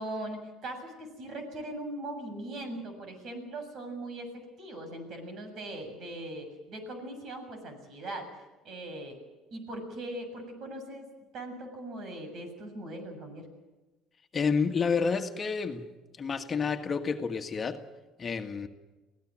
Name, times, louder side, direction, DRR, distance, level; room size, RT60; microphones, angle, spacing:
voice 1, 0.0-8.3 8.6-9.1 9.5-11.1 11.3-13.4, right 1 dB, 55° right, 7 dB, 7.2 m, -40 dB
voice 2, 14.3-15.9 16.2-17.8 18.2-18.7, left 5 dB, 35° left, 5 dB, 1.7 m, -29 dB
24.5 x 17.0 x 7.7 m, 1.1 s
supercardioid pair, 90°, 0 cm